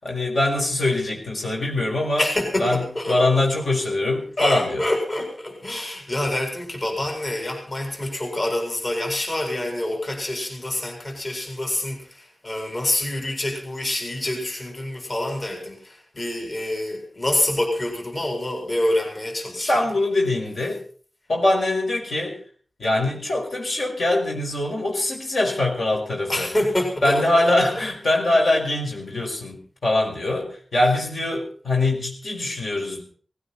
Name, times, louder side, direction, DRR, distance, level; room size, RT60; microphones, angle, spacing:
voice 1, 0.0-2.2 2.6-4.8 19.5-20.8 21.3-22.4 22.8-26.5 27.0-33.0, left 2 dB, 70° left, 0 dB, 5.3 m, -23 dB
voice 2, 2.2-3.2 4.4-19.8 26.3-27.5, left 1 dB, 40° left, 2 dB, 4.4 m, -26 dB
18.5 x 16.5 x 4.3 m, 0.43 s
wide cardioid pair, 95°, 0 cm